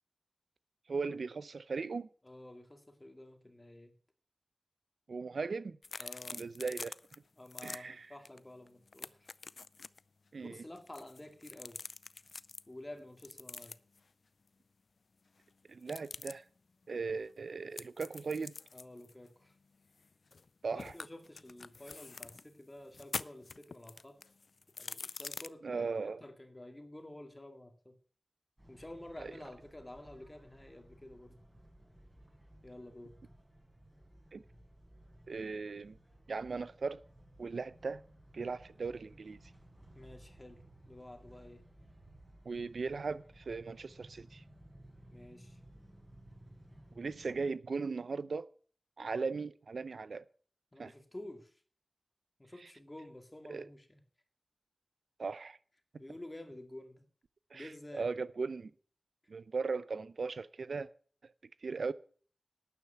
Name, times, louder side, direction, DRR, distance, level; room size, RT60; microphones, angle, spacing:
voice 1, 0.9-2.1 5.1-5.8 6.3-7.0 7.6-8.1 10.3-10.6 15.7-16.4 16.9-18.6 20.6-20.9 25.6-26.2 29.2-29.3 34.3-34.4 35.3-36.0 36.3-37.0 37.4-38.0 38.3-39.4 42.4-44.4 46.9-48.5 49.0-50.3 50.8-50.9 53.5-53.7 55.2-55.6 57.5-58.7 59.3-60.9 61.6-61.9, right 4 dB, 85° right, 0.7 m, -38 dB
voice 2, 2.2-3.9 6.0-6.4 7.3-9.3 10.4-11.8 12.7-13.7 18.7-19.6 20.7-24.2 24.8-28.0 28.7-31.4 32.6-33.1 39.9-41.6 45.1-45.6 50.7-51.6 52.4-54.0 56.0-57.0 57.5-58.1, left 1 dB, 20° left, 2.2 m, -50 dB
sound 1, 5.8-7.2 7.5-7.8 8.2-8.4 8.7-10.0 10.8-12.6 13.2-14.0 15.8-16.3 17.8-20.5 20.8-22.4 22.9-25.5, left 4 dB, 70° left, 0.4 m, -45 dB
sound 2, 28.6-47.5, right 1 dB, 15° right, 5.5 m, -58 dB
12.0 x 9.5 x 5.7 m
wide cardioid pair, 85°, 0 cm